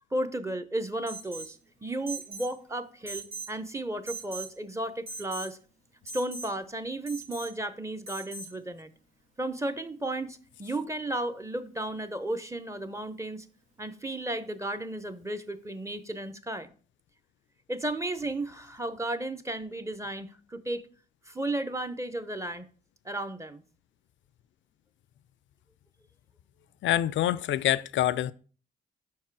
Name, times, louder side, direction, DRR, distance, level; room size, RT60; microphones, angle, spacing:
voice 1, 0.1-5.6 6.1-8.9 9.4-13.5 13.8-16.7 17.7-20.8 21.3-22.7 23.0-23.6, right 1 dB, 15° right, 0.8 m, -34 dB
Alarm, 1.1-1.6 2.1-2.5 3.1-3.6 4.1-4.5 5.1-5.5 6.1-6.5 7.1-7.5 8.1-8.5, right 3 dB, 75° right, 1.4 m, -40 dB
voice 2, 26.8-28.3, left 12 dB, 65° left, 0.4 m, -26 dB
5.5 x 4.6 x 4.7 m
hypercardioid pair, 40°, 21 cm